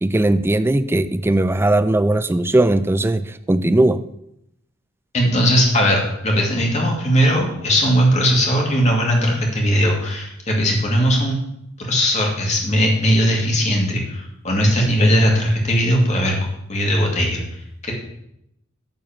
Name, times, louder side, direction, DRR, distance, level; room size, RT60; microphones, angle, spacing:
voice 1, 0.0-4.0, right 1 dB, 10° right, 12 dB, 0.3 m, -18 dB
voice 2, 5.1-11.4 11.8-16.4 16.7-17.4, equal, 35° left, -1 dB, 2.4 m, -18 dB
9.6 x 4.7 x 7.2 m, 0.78 s
head